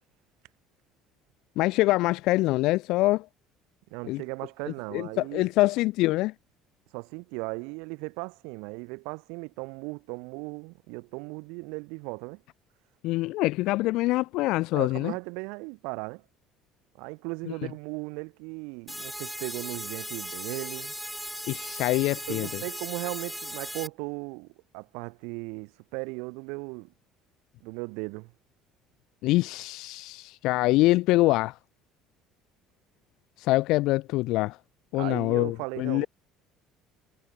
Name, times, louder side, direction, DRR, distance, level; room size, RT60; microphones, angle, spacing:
voice 1, 1.6-3.3 4.1-4.2 4.9-6.3 13.0-15.1 21.5-22.6 29.2-31.6 33.4-34.6 34.9-36.1, left 19 dB, 65° left, 1.0 m, -25 dB
voice 2, 3.9-5.5 6.9-12.4 14.7-16.2 17.0-20.9 22.3-26.9 27.6-28.3 34.9-36.1, right 31 dB, 85° right, 1.9 m, -37 dB
sound 1, 18.9-23.9, equal, ahead, 0.5 m, -37 dB
cardioid pair, 150°, 0 cm